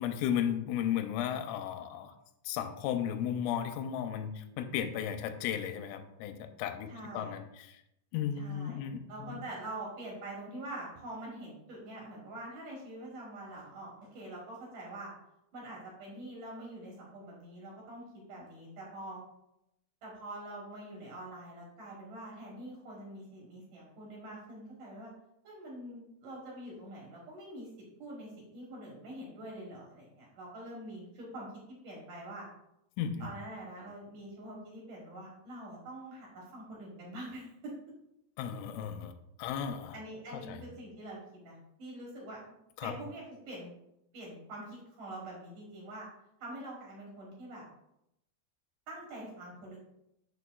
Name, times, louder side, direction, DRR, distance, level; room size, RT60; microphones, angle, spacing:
voice 1, 0.0-2.1 2.5-7.8 8.1-9.4 33.0-33.3 38.4-39.1 39.4-40.0 40.3-40.6 42.8-42.9, left 9 dB, 85° left, 7 dB, 3.0 m, -35 dB
voice 2, 6.9-7.3 8.4-8.8 9.1-15.1 15.5-19.2 20.0-25.1 25.4-27.7 28.0-31.5 31.8-32.5 33.2-37.7 39.9-42.4 42.8-43.7 44.1-46.1 46.4-47.6 48.9-49.8, right 1 dB, 75° right, -3 dB, 1.9 m, -45 dB
7.0 x 6.6 x 2.3 m, 0.82 s
omnidirectional pair, 5.9 m